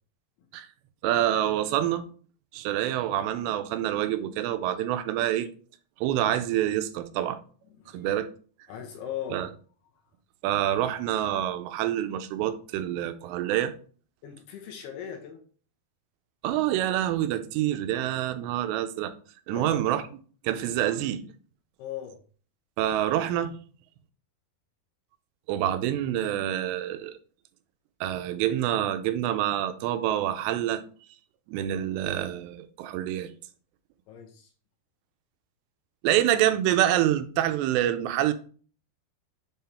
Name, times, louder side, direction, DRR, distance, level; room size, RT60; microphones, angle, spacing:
voice 1, 1.0-2.0 2.5-5.5 6.0-7.4 7.9-8.3 9.3-9.5 10.4-13.7 16.4-19.1 19.5-20.0 20.4-21.2 22.8-23.6 25.5-27.2 28.0-30.8 31.5-33.3 36.0-38.3, right 12 dB, 85° right, 2.8 m, -26 dB
voice 2, 7.8-8.1 8.7-9.5 14.2-15.4 19.5-19.9 21.8-22.2 34.1-34.5, left 9 dB, 75° left, 2.7 m, -39 dB
7.2 x 3.9 x 4.2 m
omnidirectional pair, 4.9 m